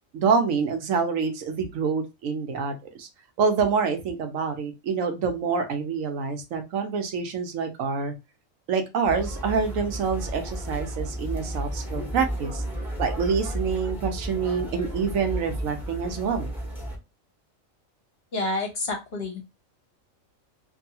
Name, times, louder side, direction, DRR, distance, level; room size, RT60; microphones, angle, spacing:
voice 1, 0.1-3.1 3.4-8.1 8.7-12.6 13.0-16.5, right 5 dB, 75° right, 5 dB, 1.0 m, -26 dB
sound 1, 9.0-17.0, right 1 dB, ahead, 0.7 m, -33 dB
voice 2, 18.3-19.4, left 2 dB, 55° left, 2 dB, 0.9 m, -29 dB
2.7 x 2.6 x 2.7 m, 0.25 s
omnidirectional pair, 1.4 m